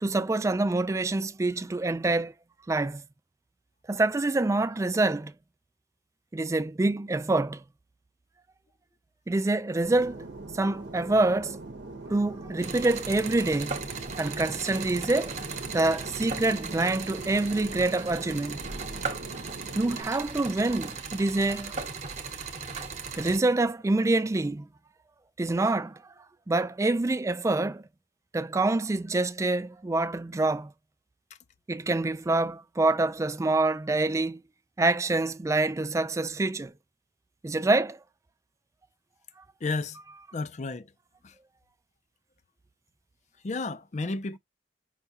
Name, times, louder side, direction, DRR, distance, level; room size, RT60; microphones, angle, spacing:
voice 1, 0.0-2.3 2.7-3.0 3.9-5.3 6.3-7.6 9.3-10.3 10.5-11.6 12.1-13.8 14.2-15.4 15.7-18.6 19.8-21.8 23.2-24.7 25.4-26.0 26.5-27.8 28.3-30.7 31.7-34.4 34.8-36.7 37.4-38.0, right 2 dB, 15° right, 0.3 m, -26 dB
Fixed-wing aircraft airplane, 9.8-20.0, right 2 dB, 75° right, 0.8 m, -42 dB
sound 1, 12.6-23.4, right 4 dB, 40° right, 1.0 m, -37 dB
voice 2, 39.6-40.0 40.3-40.9 41.2-41.3 43.4-44.4, left 3 dB, 40° left, 0.5 m, -32 dB
5.8 x 2.3 x 2.7 m
head